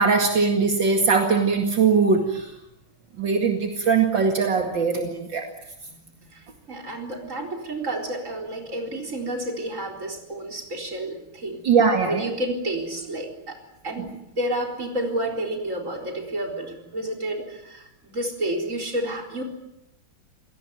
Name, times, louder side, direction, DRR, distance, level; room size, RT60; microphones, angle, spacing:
voice 1, 0.0-2.4 3.2-5.4 11.6-12.2, right 5 dB, 70° right, 3 dB, 2.8 m, -20 dB
voice 2, 5.9-11.6 12.1-13.6 13.8-19.4, right 1 dB, 40° right, 2 dB, 4.4 m, -30 dB
27.0 x 18.0 x 9.3 m, 0.86 s
omnidirectional pair, 2.2 m